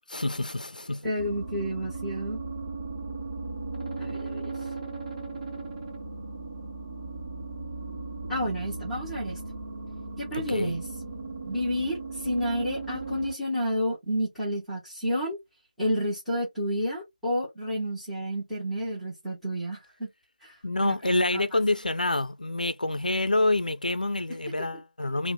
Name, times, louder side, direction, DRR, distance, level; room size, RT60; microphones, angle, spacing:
voice 1, 0.1-1.0 5.0-5.1 10.3-10.7 20.6-25.3, left 2 dB, 80° left, 0.4 m, -27 dB
voice 2, 1.0-2.4 4.0-4.5 8.3-9.4 10.2-10.9 11.5-15.4 15.8-20.1 20.4-20.5 20.8-21.0 21.3-21.4, equal, ahead, 0.8 m, -30 dB
sound 1, 1.2-13.3, right 3 dB, 35° right, 1.1 m, -37 dB
2.6 x 2.1 x 3.5 m
figure-of-eight pair, 165°, 4 cm